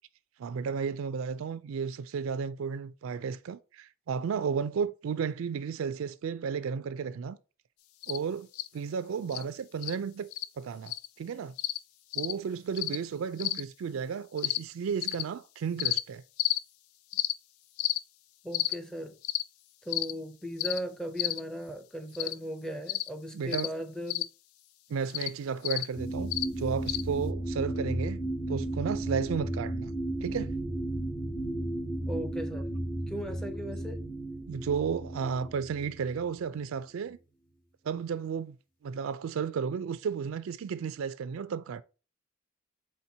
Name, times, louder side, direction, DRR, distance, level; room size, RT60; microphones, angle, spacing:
voice 1, 0.4-7.4 8.1-8.5 8.7-10.3 10.6-11.5 12.2-16.2 23.3-23.7 24.9-29.9 30.2-30.5 34.5-37.2 37.8-38.6 38.8-41.8, right 6 dB, 70° right, 0.3 m, -33 dB
sound 1, 8.0-8.2 8.5-8.7 9.3-9.4 9.8-9.9 10.3-10.4 10.9-11.1 11.6-11.8 12.1-12.3 12.8-13.0 13.4-13.6 14.4-14.6 15.0-15.2 15.8-16.0 16.4-16.6 17.1-17.3 17.8-18.0 18.5-18.7 19.2-19.4 19.9-20.1 20.6-20.8 21.2-21.4 22.1-22.3 22.9-23.1 23.5-23.7 24.1-24.2 25.1-25.3 25.6-25.8 26.3-26.4 26.9-27.0, left 15 dB, 80° left, 0.3 m, -30 dB
voice 2, 18.4-19.2 19.8-24.3 32.1-32.7 33.1-34.0, equal, 5° left, 0.4 m, -37 dB
sound 2, 25.9-36.0 36.6-36.7, right 1 dB, 40° left, 1.3 m, -34 dB
4.3 x 4.0 x 2.7 m
head